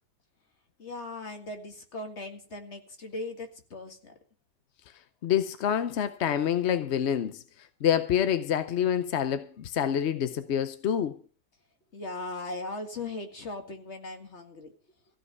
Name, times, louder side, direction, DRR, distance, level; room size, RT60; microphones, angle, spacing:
voice 1, 0.8-4.1 11.9-14.7, left 2 dB, 40° left, 2.2 m, -38 dB
voice 2, 5.2-7.4 7.8-11.2, left 9 dB, 55° left, 0.7 m, -27 dB
15.0 x 5.3 x 9.4 m
omnidirectional pair, 1.8 m